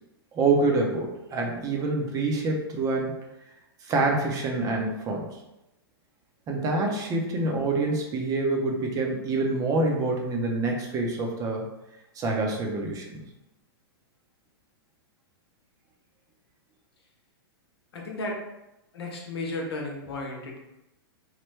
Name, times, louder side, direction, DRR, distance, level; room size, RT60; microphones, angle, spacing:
voice 1, 0.3-3.1 3.8-5.3 6.5-11.6 12.2-13.2, right 3 dB, 25° right, 1 dB, 0.6 m, -26 dB
voice 2, 17.9-18.4 18.9-20.6, left 2 dB, 80° left, 0 dB, 0.9 m, -34 dB
3.1 x 2.1 x 3.3 m, 0.94 s
hypercardioid pair, 120°, 13 cm